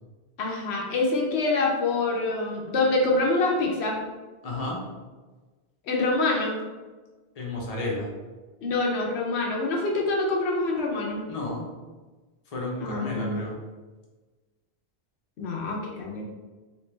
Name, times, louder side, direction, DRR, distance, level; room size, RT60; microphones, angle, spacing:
voice 1, 0.4-4.0 5.8-6.6 8.6-11.2 12.8-13.4 15.4-16.2, left 2 dB, 85° left, -1 dB, 1.0 m, -26 dB
voice 2, 4.4-4.8 7.3-8.1 11.3-11.7 12.5-13.5, left 2 dB, 40° left, -3 dB, 0.8 m, -32 dB
3.2 x 3.1 x 3.2 m, 1.3 s
omnidirectional pair, 1.1 m